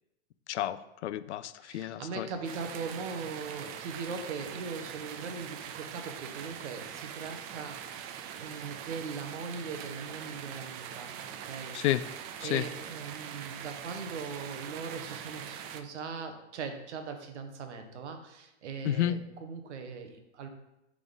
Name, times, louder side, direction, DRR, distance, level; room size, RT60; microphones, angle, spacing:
voice 1, 0.5-2.3 11.7-12.0 12.4-12.7 18.8-19.2, left 13 dB, 70° left, 14 dB, 0.5 m, -31 dB
voice 2, 1.6-11.8 12.4-20.5, right 5 dB, 70° right, 7 dB, 1.2 m, -40 dB
sound 1, 2.4-15.8, right 8 dB, 30° right, 0.4 m, -43 dB
6.9 x 3.8 x 3.9 m, 0.90 s
hypercardioid pair, 130°, 36 cm